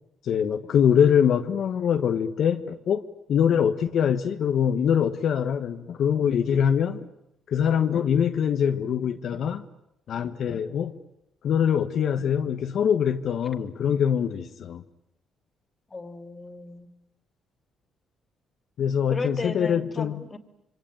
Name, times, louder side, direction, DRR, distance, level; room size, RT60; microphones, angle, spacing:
voice 1, 0.2-7.1 7.5-9.7 10.1-11.0 11.4-14.8 18.8-20.2, left 8 dB, 65° left, 7 dB, 1.2 m, -23 dB
voice 2, 15.9-16.9 19.1-20.4, left 3 dB, 25° left, 9 dB, 2.8 m, -35 dB
26.5 x 24.5 x 9.1 m, 0.86 s
cardioid pair, 90°, 0 cm